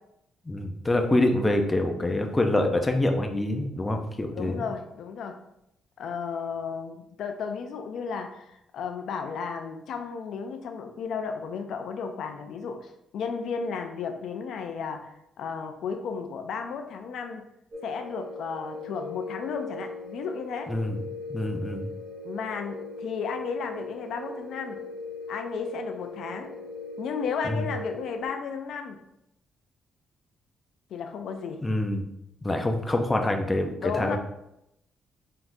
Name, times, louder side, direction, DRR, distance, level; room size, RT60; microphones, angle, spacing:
voice 1, 0.5-4.6 20.7-21.0 21.3-21.9 27.5-27.6 31.6-32.0 32.4-34.2, left 1 dB, 15° left, 4 dB, 0.6 m, -26 dB
voice 2, 4.3-5.4 6.0-17.4 17.8-20.7 22.2-24.8 25.3-26.5 27.0-29.0 30.9-31.6 33.8-34.2, left 6 dB, 70° left, 5 dB, 0.4 m, -34 dB
sound 1, 17.7-28.3, left 3 dB, 50° right, 1.7 m, -39 dB
4.5 x 3.7 x 2.6 m, 0.80 s
cardioid pair, 90°, 0 cm